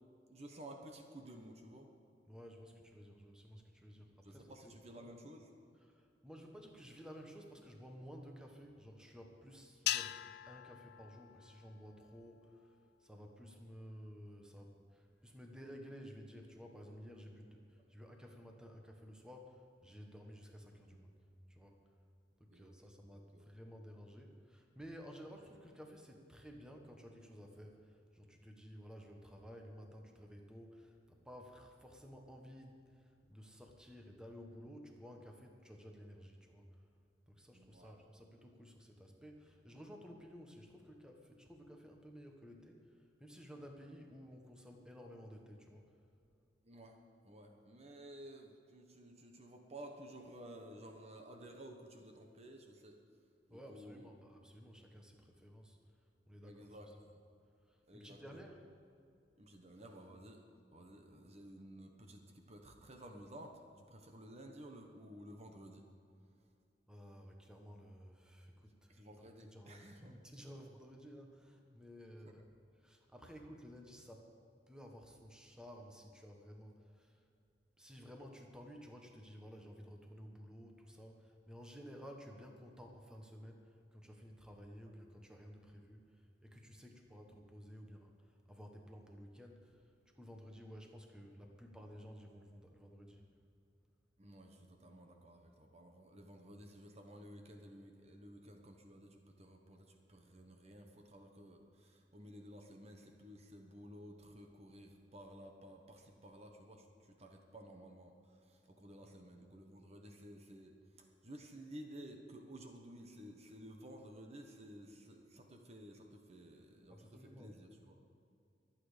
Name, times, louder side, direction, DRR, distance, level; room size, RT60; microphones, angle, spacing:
voice 1, 0.3-1.9 4.2-5.5 22.5-22.7 23.3-23.4 37.5-37.9 46.6-53.0 53.5-54.1 56.4-57.2 57.9-58.5 59.4-60.4 60.7-63.6 63.9-65.8 68.9-70.2 72.2-72.3 94.2-118.0, right 1 dB, 35° right, 3 dB, 1.2 m, -54 dB
voice 2, 2.3-5.1 5.7-21.2 21.5-21.8 22.4-36.9 37.3-45.9 53.5-55.8 56.3-56.9 57.7-58.7 66.9-72.5 72.7-74.3 74.7-77.3 77.8-93.3 108.9-109.2 116.9-117.6, equal, 5° right, 2 dB, 1.4 m, -54 dB
sound 1, 9.9-12.3, left 14 dB, 60° left, 0.3 m, -41 dB
23.0 x 8.8 x 5.1 m, 2.5 s
head